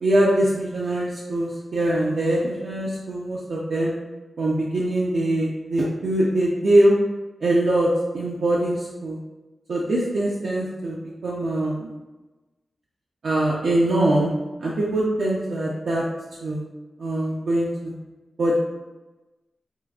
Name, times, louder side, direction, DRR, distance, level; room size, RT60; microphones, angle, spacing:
voice 1, 0.0-3.9 4.4-7.0 7.4-9.2 9.7-11.9 13.2-14.3 14.6-16.0 16.4-16.6 17.0-17.9 18.4-18.6, right 1 dB, 75° right, -5 dB, 0.5 m, -22 dB
4.5 x 2.4 x 2.3 m, 1.1 s
wide cardioid pair, 130°, 0 cm